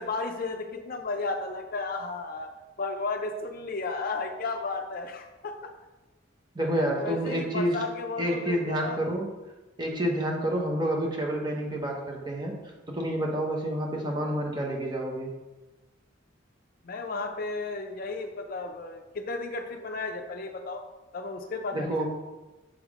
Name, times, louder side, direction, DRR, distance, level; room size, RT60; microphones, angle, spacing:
voice 1, 0.0-2.5 2.8-5.7 6.8-9.0 16.8-20.8 21.1-22.1, left 3 dB, 45° left, 5 dB, 0.5 m, -34 dB
voice 2, 6.5-7.8 8.2-9.3 9.8-12.5 12.9-15.3 21.7-22.1, right 1 dB, 20° right, 0 dB, 0.9 m, -29 dB
6.3 x 3.5 x 4.8 m, 1.1 s
head